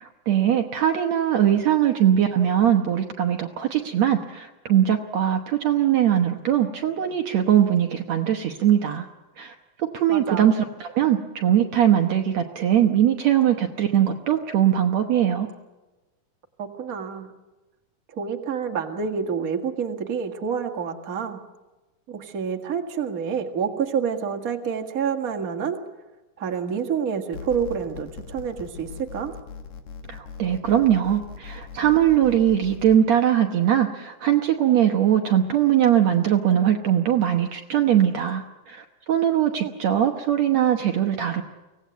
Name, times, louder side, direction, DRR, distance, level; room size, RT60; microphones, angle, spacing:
voice 1, 0.0-9.1 9.4-15.5 30.1-41.4, right 10 dB, 60° right, 4 dB, 2.1 m, -21 dB
voice 2, 10.1-10.5 16.6-17.3 18.1-21.4 22.1-25.8 26.4-29.3 39.6-39.7, right 7 dB, 30° right, 4 dB, 1.9 m, -28 dB
sound 1, 27.3-33.0, left 6 dB, 90° left, 3.7 m, -40 dB
24.5 x 17.5 x 9.3 m, 1.1 s
omnidirectional pair, 3.9 m